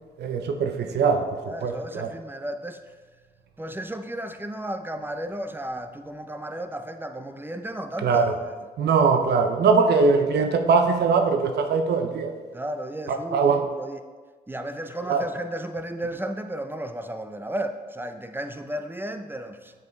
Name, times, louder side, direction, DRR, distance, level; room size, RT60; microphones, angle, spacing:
voice 1, 0.2-2.1 8.0-8.3 8.8-12.3 13.1-13.7 15.1-15.3, right 4 dB, 75° right, 6 dB, 0.6 m, -21 dB
voice 2, 1.5-2.8 3.6-8.6 12.5-14.0 14.5-19.7, right 1 dB, 10° right, 8 dB, 0.6 m, -34 dB
7.5 x 7.0 x 3.2 m, 1.4 s
cardioid pair, 70°, 17 cm